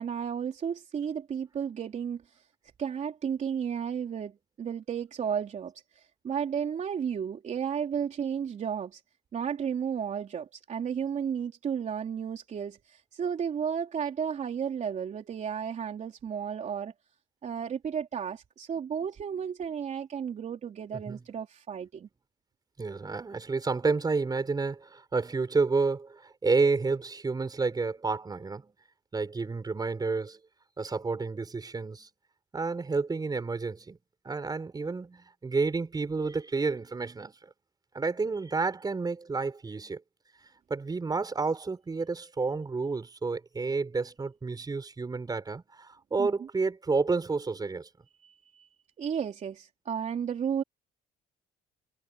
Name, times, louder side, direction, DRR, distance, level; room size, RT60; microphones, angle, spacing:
voice 1, 0.0-2.4 2.8-9.0 9.3-16.9 17.4-22.1 46.2-46.3 48.2-48.7 49.0-50.6, right 7 dB, 45° right, 3.6 m, -33 dB
voice 2, 22.8-28.7 29.1-30.4 30.8-32.1 32.5-34.0 34.2-37.5 37.9-40.0 40.7-47.9, right 4 dB, 25° right, 6.0 m, -30 dB
cardioid pair, 110°, 17 cm